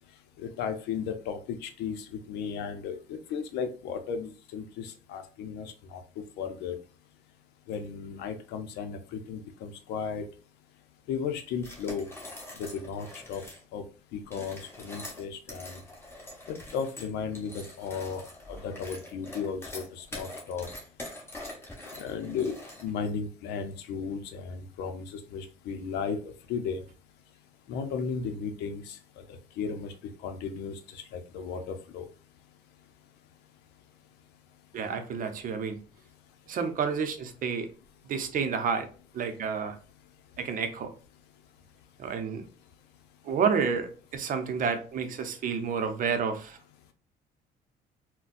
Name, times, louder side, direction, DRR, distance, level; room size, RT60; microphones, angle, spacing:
voice 1, 0.4-3.0 3.3-6.0 6.4-6.8 7.7-10.2 11.1-12.1 12.6-13.4 13.7-13.8 14.1-15.8 16.5-18.2 18.5-20.7 22.0-26.2 26.5-26.8 27.7-29.0 29.6-29.9 30.2-32.1, left 6 dB, 85° left, 7 dB, 0.6 m, -35 dB
sound 1, 11.6-13.6 14.2-23.1, left 1 dB, 15° left, 1.1 m, -44 dB
voice 2, 34.7-35.8 36.5-37.7 38.1-38.9 39.1-39.7 40.4-40.9 42.0-42.5 43.2-46.6, right 6 dB, 55° right, 8 dB, 0.6 m, -30 dB
3.9 x 2.2 x 2.5 m, 0.38 s
cardioid pair, 110°, 17 cm